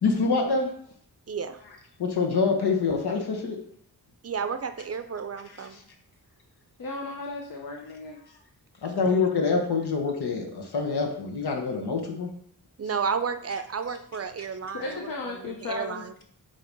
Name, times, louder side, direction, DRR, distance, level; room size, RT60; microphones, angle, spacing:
voice 1, 0.0-0.7 2.0-3.6 8.8-12.3, left 4 dB, 85° left, 1 dB, 1.3 m, -25 dB
voice 2, 1.3-1.6 4.2-5.8 9.1-9.2 12.8-16.1, right 6 dB, 40° right, 10 dB, 0.5 m, -32 dB
voice 3, 6.8-8.2 14.7-16.0, left 3 dB, 60° left, 0 dB, 0.9 m, -35 dB
7.7 x 3.0 x 5.3 m, 0.63 s
wide cardioid pair, 155°, 38 cm